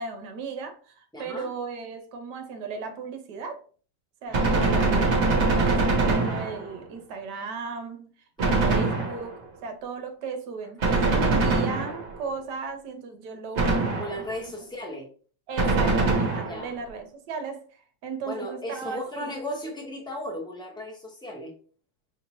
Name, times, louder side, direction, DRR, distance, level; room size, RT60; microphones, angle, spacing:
voice 1, 0.0-3.6 4.2-8.1 8.4-13.7 14.2-14.3 14.6-14.7 15.5-19.3, right 4 dB, 65° right, 1.2 m, -36 dB
voice 2, 1.1-1.5 4.3-4.7 8.4-8.9 13.9-15.1 16.4-16.7 18.2-21.5, left 1 dB, 5° left, 0.6 m, -36 dB
Gunshot gunfire, 4.3-6.8 8.4-9.4 10.8-12.2 13.5-14.4 15.6-16.7, right 3 dB, 45° right, 1.0 m, -23 dB
5.1 x 2.8 x 2.9 m
omnidirectional pair, 2.2 m